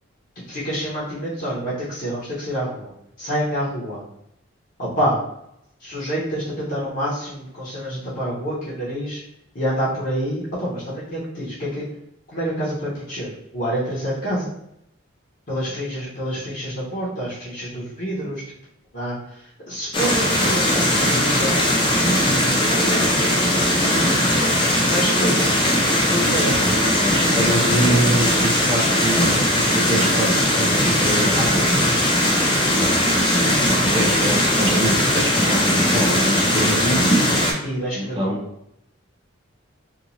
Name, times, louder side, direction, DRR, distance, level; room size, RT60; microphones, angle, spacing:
voice 1, 0.5-4.0 4.8-5.2 5.8-9.2 9.5-11.9 12.3-14.5 15.5-18.4 18.9-20.3 20.5-21.7 22.5-23.4 24.8-25.5 26.0-26.6 32.8-33.0 37.6-38.4, equal, 50° left, -9 dB, 0.9 m, -27 dB
sound 1, 19.9-37.5, equal, 25° left, 0.5 m, -19 dB
voice 2, 26.1-31.7 33.4-33.5 33.8-37.3 37.9-38.4, right 1 dB, 25° right, -1 dB, 0.6 m, -25 dB
2.9 x 2.5 x 2.6 m, 0.77 s
head